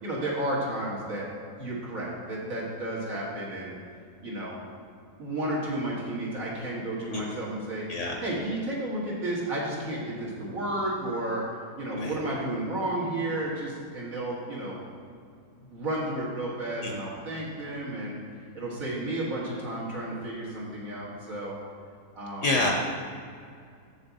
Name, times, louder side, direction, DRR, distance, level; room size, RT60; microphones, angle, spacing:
voice 1, 0.0-1.3 1.6-3.7 4.2-4.6 5.2-7.9 8.2-11.4 11.8-14.8 15.6-18.2 18.5-21.6 22.1-22.6, right 1 dB, 55° right, -6 dB, 2.2 m, -32 dB
voice 2, 22.4-22.8, left 2 dB, 55° left, 0 dB, 1.1 m, -27 dB
7.3 x 6.7 x 4.1 m, 2.2 s
omnidirectional pair, 1.7 m